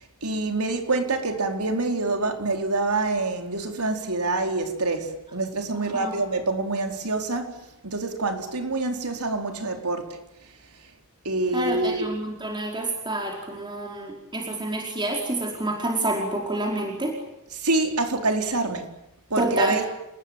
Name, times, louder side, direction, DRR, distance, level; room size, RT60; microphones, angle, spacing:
voice 1, 0.2-7.6 7.8-10.2 11.2-12.0 17.6-18.9 19.3-19.8, right 2 dB, 80° right, 4.5 m, -26 dB
voice 2, 5.7-6.2 11.5-17.2 19.4-19.8, right 1 dB, 20° right, 4.9 m, -28 dB
29.5 x 21.0 x 9.2 m
head